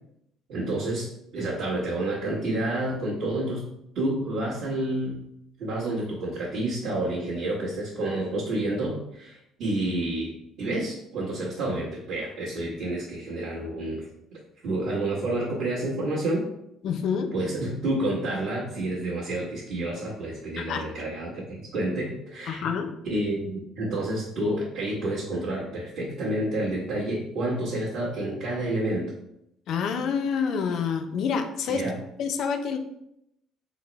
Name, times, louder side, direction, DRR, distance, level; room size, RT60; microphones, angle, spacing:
voice 1, 0.5-3.6 3.9-5.2 5.6-14.0 14.6-16.5 17.3-22.7 23.0-29.1 31.7-32.0, right 1 dB, 65° right, -11 dB, 1.3 m, -29 dB
voice 2, 16.8-17.3 20.6-20.9 22.5-22.9 29.7-31.8 32.2-32.8, left 6 dB, 60° left, 6 dB, 0.4 m, -27 dB
4.0 x 2.1 x 4.0 m, 0.79 s
cardioid pair, 130°, 0 cm